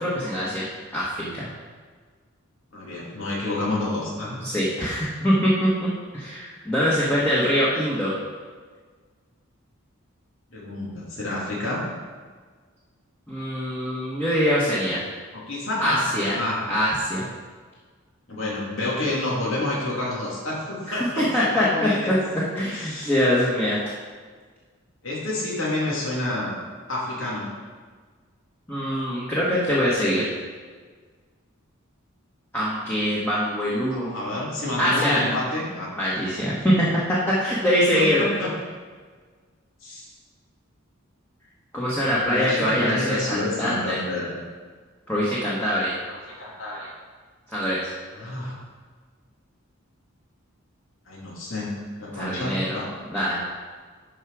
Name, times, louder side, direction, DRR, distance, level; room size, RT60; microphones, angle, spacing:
voice 1, 0.0-1.5 4.4-5.9 6.1-8.1 13.3-15.0 15.8-16.4 16.7-17.3 20.9-22.1 22.5-23.8 28.7-30.3 32.5-34.1 34.8-35.2 36.0-36.9 37.4-38.2 41.7-44.0 45.1-45.9 47.5-47.8 52.1-52.8 53.1-53.4, equal, 10° left, -8 dB, 1.4 m, -23 dB
voice 2, 2.7-4.4 10.5-11.8 15.5-16.6 18.3-21.3 21.6-22.1 22.7-23.1 25.0-26.5 26.9-27.5 33.9-35.9 37.9-38.5 39.8-40.1 42.0-44.3 46.1-46.9 48.1-48.5 51.1-52.9, left 2 dB, 70° left, -6 dB, 2.9 m, -29 dB
12.0 x 4.9 x 4.9 m, 1.5 s
head